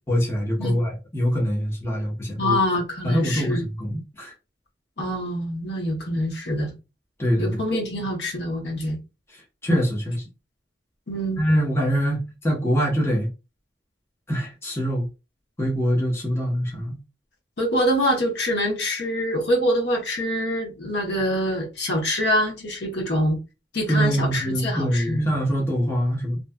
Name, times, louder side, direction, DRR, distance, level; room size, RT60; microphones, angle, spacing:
voice 1, 0.1-2.6 3.0-4.3 7.2-7.5 9.6-10.2 11.4-13.3 14.3-15.0 15.6-17.0 23.9-26.4, equal, 15° left, 0.7 m, -24 dB
voice 2, 2.4-3.6 5.0-6.7 7.4-9.0 11.1-11.4 17.6-23.4 23.7-25.3, equal, 65° left, 0.9 m, -25 dB
2.6 x 2.3 x 2.2 m
head